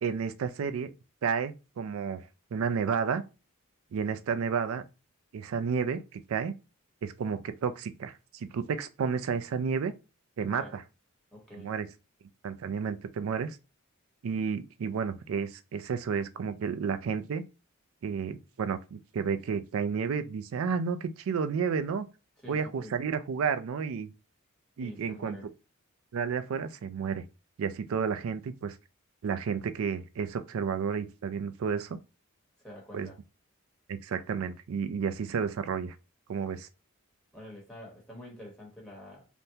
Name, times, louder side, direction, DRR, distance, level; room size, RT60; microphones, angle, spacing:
voice 1, 0.0-0.9 1.2-2.2 2.5-3.2 3.9-4.8 5.3-6.5 7.0-9.9 10.4-10.8 11.5-11.9 12.4-13.5 14.2-17.4 18.0-22.1 22.5-24.1 24.8-25.4 26.1-27.2 27.6-28.8 29.2-32.0 32.9-33.1 33.9-35.9 36.3-36.7, right 6 dB, 70° right, 0.3 m, -31 dB
voice 2, 10.4-10.7 11.3-11.7 22.4-22.9 24.8-25.5 32.6-33.2 37.3-39.3, left 1 dB, 5° left, 1.0 m, -47 dB
3.4 x 2.1 x 2.7 m
head